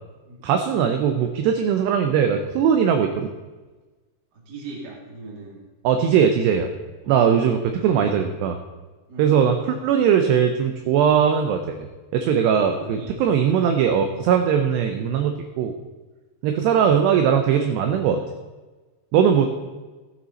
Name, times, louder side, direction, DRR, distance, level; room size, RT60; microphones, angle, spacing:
voice 1, 0.4-3.3 5.8-6.7 7.1-8.6 9.2-15.7 16.4-18.2 19.1-19.5, right 7 dB, 80° right, 6 dB, 2.4 m, -20 dB
voice 2, 4.3-5.6 7.0-7.7 9.1-9.5 12.7-13.2 16.4-17.3, right 2 dB, 30° right, -3 dB, 2.2 m, -39 dB
15.5 x 9.1 x 4.1 m, 1.3 s
omnidirectional pair, 5.7 m